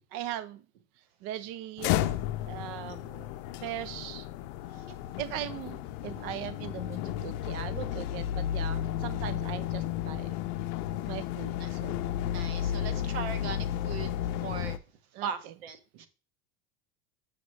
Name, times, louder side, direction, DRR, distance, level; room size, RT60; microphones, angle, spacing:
voice 1, 0.1-0.6 1.2-2.0 2.5-3.3 3.6-4.3 5.2-10.4 11.1-12.0 15.1-15.3, right 12 dB, 45° right, 0.4 m, -39 dB
sound 1, 1.8-14.8, left 11 dB, 60° left, 0.6 m, -33 dB
voice 2, 12.2-14.8 15.2-16.1, right 7 dB, 80° right, 1.3 m, -39 dB
7.1 x 6.3 x 3.2 m
supercardioid pair, 160°, 30 cm